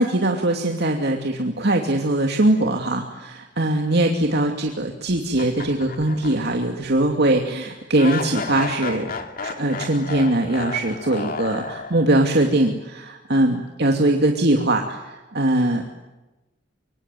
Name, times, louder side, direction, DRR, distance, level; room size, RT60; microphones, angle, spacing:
voice 1, 0.0-15.8, right 1 dB, 60° right, 2 dB, 2.6 m, -21 dB
sound 1, 5.3-6.6 7.0-7.1 8.0-12.3, left 4 dB, 50° left, 2.7 m, -32 dB
25.5 x 25.0 x 9.2 m, 1.1 s
head